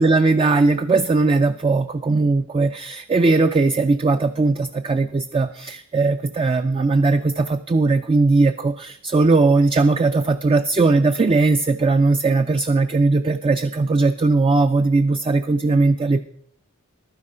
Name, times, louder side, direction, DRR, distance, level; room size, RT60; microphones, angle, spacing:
voice 1, 0.0-16.2, right 3 dB, 25° right, 8 dB, 0.4 m, -19 dB
11.5 x 9.6 x 5.0 m, 0.66 s
head